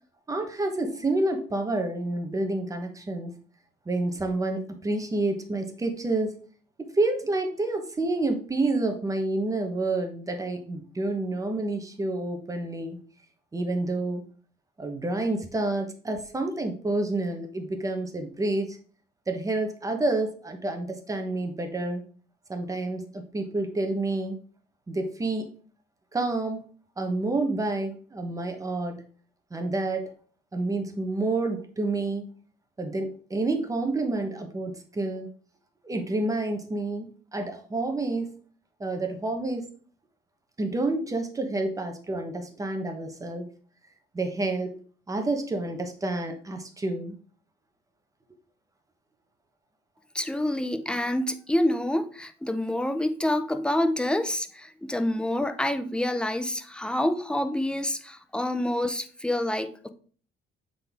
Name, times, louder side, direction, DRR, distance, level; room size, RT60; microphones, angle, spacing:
voice 1, 0.3-3.4 3.9-6.3 6.9-13.0 13.5-14.2 14.8-18.8 19.3-22.0 22.5-24.4 24.9-25.5 26.1-26.6 27.0-29.0 29.5-30.1 30.5-32.3 32.8-35.3 35.8-38.3 38.8-39.7 40.6-43.5 44.1-44.8 45.1-47.1, right 2 dB, 20° right, 1.0 m, -29 dB
voice 2, 50.1-59.9, left 1 dB, 5° left, 0.6 m, -27 dB
7.6 x 3.9 x 3.5 m
cardioid pair, 110°, 17 cm